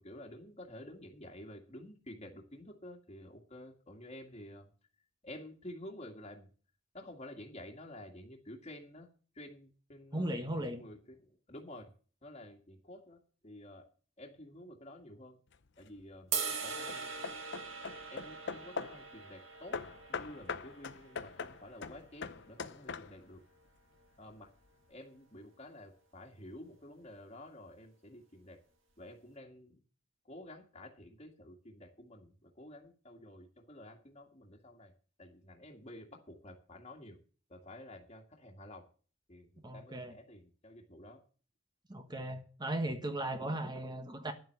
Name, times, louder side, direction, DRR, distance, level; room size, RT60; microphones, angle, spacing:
voice 1, 0.0-4.7 5.2-6.5 6.9-9.1 9.4-11.9 12.2-13.9 14.2-15.4 15.8-17.3 18.1-19.8 20.1-23.4 24.2-24.5 24.9-28.6 29.0-29.8 30.3-34.9 35.2-37.2 37.5-38.9 39.3-41.2, left 1 dB, 35° left, 1.9 m, -51 dB
voice 2, 10.1-10.8 39.6-40.1 41.9-44.3, right 1 dB, 20° right, 1.3 m, -37 dB
Hammer / Wood, 15.5-16.0 16.6-19.1 19.7-23.4, left 5 dB, 60° left, 0.8 m, -42 dB
sound 1, 16.3-22.5, right 6 dB, 80° right, 2.3 m, -42 dB
11.0 x 7.7 x 6.6 m
head